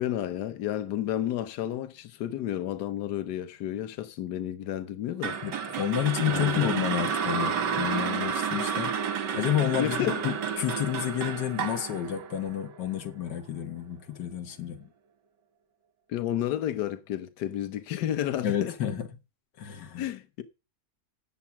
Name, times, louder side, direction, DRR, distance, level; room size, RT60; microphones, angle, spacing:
voice 1, 0.0-5.4 6.2-6.7 9.8-10.2 16.1-18.7 20.0-20.4, left 11 dB, 75° left, 1.4 m, -31 dB
sound 1, 5.2-13.4, right 7 dB, 90° right, 1.7 m, -31 dB
voice 2, 5.4-8.9 9.3-14.9 18.4-19.0 19.6-20.0, left 11 dB, 90° left, 1.8 m, -30 dB
9.6 x 7.2 x 5.7 m
omnidirectional pair, 1.8 m